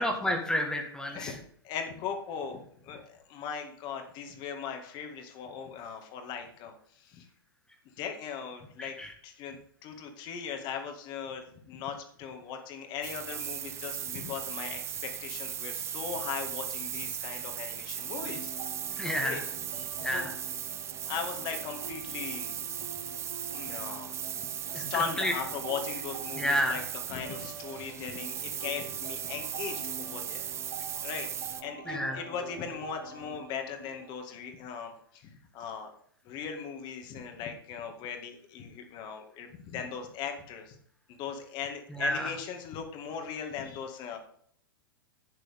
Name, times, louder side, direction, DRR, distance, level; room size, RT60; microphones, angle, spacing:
voice 1, 0.0-1.3 8.8-9.1 19.0-19.4 20.0-20.3 24.7-25.3 26.4-26.8 31.9-32.2 42.0-42.3, equal, 5° left, 3 dB, 1.7 m, -30 dB
voice 2, 1.6-7.3 8.0-8.9 9.2-18.5 19.2-19.4 19.8-20.3 21.0-22.6 23.5-24.1 24.7-30.4 31.0-31.3 31.6-35.9 36.2-40.8 41.1-44.2, left 6 dB, 40° left, 4 dB, 2.1 m, -39 dB
sound 1, 13.0-31.6, right 10 dB, 20° right, 0.6 m, -37 dB
sound 2, 18.0-34.2, right 5 dB, 75° right, 3.3 m, -46 dB
11.0 x 8.9 x 3.7 m, 0.64 s
figure-of-eight pair, 100°, 12 cm